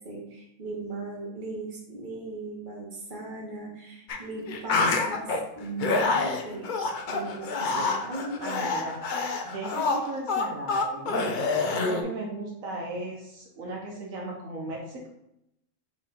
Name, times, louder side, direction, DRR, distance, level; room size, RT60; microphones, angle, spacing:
voice 1, 0.0-5.3 5.6-8.7, right 2 dB, 40° right, -2 dB, 1.2 m, -38 dB
sound 1, 4.1-4.2 4.5-5.4 5.8-12.0, left 3 dB, 70° left, 0.4 m, -27 dB
voice 2, 8.4-9.0 9.4-15.1, right 2 dB, 75° right, -2 dB, 1.2 m, -36 dB
4.2 x 3.0 x 4.0 m, 0.81 s
omnidirectional pair, 1.4 m